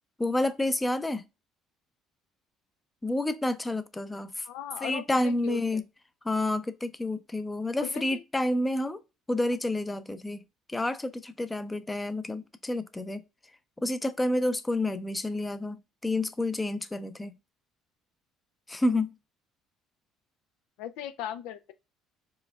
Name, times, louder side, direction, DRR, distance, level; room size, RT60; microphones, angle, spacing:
voice 1, 0.2-1.2 3.0-4.5 4.8-5.8 6.2-9.0 9.3-10.4 10.7-13.2 13.8-17.3 18.7-19.1, left 1 dB, 15° left, 0.5 m, -29 dB
voice 2, 4.4-5.8 7.7-8.2 20.8-21.7, left 11 dB, 85° left, 0.4 m, -38 dB
5.0 x 3.4 x 2.3 m
supercardioid pair, 90°, 0 cm